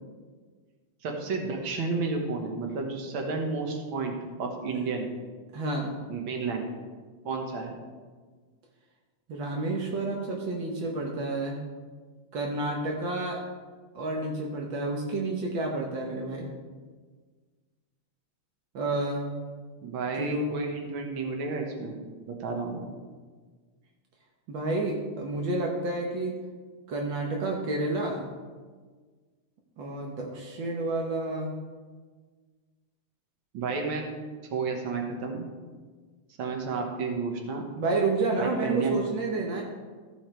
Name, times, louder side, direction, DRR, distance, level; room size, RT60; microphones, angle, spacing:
voice 1, 1.0-5.1 6.1-6.7 7.2-7.8 19.8-22.0 22.3-22.9 33.5-34.0 34.5-35.5 36.4-37.6 38.4-38.9, right 4 dB, 55° right, 2 dB, 1.6 m, -31 dB
voice 2, 5.5-5.9 9.3-11.6 12.3-13.4 13.9-16.5 18.7-19.4 20.2-20.6 24.5-26.3 26.9-28.2 29.8-31.5 37.8-39.6, right 2 dB, 75° right, 0 dB, 1.1 m, -30 dB
15.0 x 5.2 x 4.4 m, 1.5 s
omnidirectional pair, 3.6 m